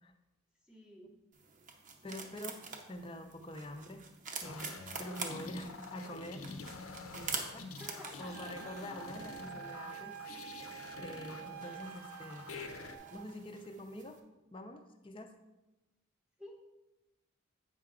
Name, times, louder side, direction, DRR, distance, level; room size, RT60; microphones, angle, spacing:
voice 1, 0.6-1.2 7.8-8.7 16.4-16.6, equal, 5° right, 0 dB, 0.8 m, -51 dB
sound 1, 1.3-14.2, right 5 dB, 40° right, 0.7 m, -47 dB
voice 2, 2.0-2.6 2.9-4.0 4.4-6.4 7.1-7.6 8.2-10.2 11.0-12.5 13.1-14.2 14.5-15.3, left 1 dB, 25° left, 5 dB, 0.5 m, -46 dB
sound 2, 4.4-13.0, left 3 dB, 85° left, 0.7 m, -47 dB
Wind instrument woodwind instrument, 8.3-13.3, right 10 dB, 90° right, 0.4 m, -48 dB
8.1 x 5.7 x 3.7 m, 1.0 s
head